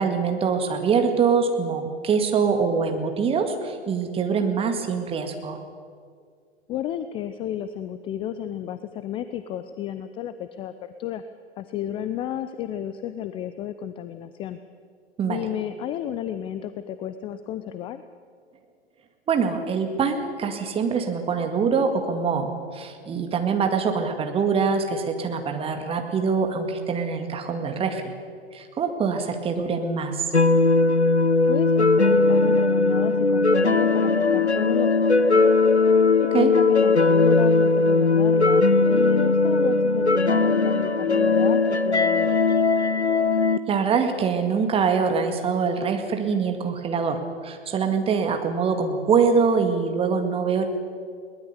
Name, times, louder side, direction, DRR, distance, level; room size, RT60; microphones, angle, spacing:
voice 1, 0.0-5.6 15.2-15.4 19.3-28.1 28.5-30.3 36.3-36.5 43.7-50.6, right 5 dB, 15° right, 5 dB, 2.0 m, -24 dB
voice 2, 6.7-11.2 11.6-14.6 15.3-18.0 31.5-35.6 36.4-38.6 38.9-42.4, left 10 dB, 15° left, 12 dB, 0.5 m, -32 dB
sound 1, 30.3-43.6, left 3 dB, 90° left, 0.8 m, -19 dB
22.0 x 19.0 x 6.9 m, 2.1 s
figure-of-eight pair, 105°, 32 cm